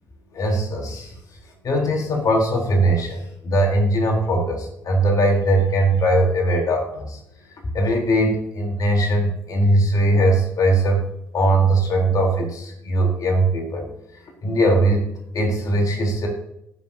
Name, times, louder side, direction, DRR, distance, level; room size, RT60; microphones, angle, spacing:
voice 1, 0.4-1.2 1.6-7.2 7.5-11.0 11.3-13.9 14.2-15.1 15.3-16.3, right 1 dB, 50° left, 0 dB, 3.9 m, -20 dB
19.5 x 7.3 x 2.8 m, 0.78 s
hypercardioid pair, 45°, 8 cm